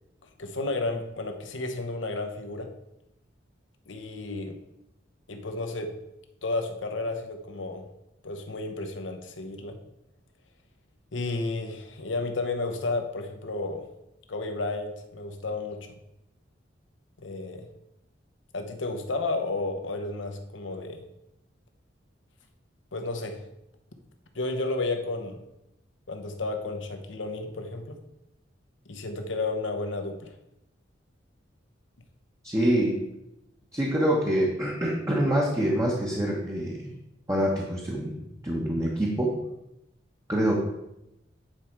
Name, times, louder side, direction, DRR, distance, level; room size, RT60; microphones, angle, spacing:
voice 1, 0.4-2.7 3.9-4.6 5.3-5.9 6.4-7.9 8.2-9.8 11.1-13.8 14.3-15.8 17.2-17.7 18.5-21.0 22.9-23.4 24.3-25.4 26.1-28.0 28.9-30.3, left 2 dB, 80° left, 6 dB, 1.0 m, -32 dB
voice 2, 32.4-33.0 33.7-36.9 37.3-38.2 38.4-39.4 40.3-40.6, right 1 dB, 15° right, -3 dB, 1.0 m, -25 dB
9.1 x 4.9 x 4.5 m, 0.86 s
head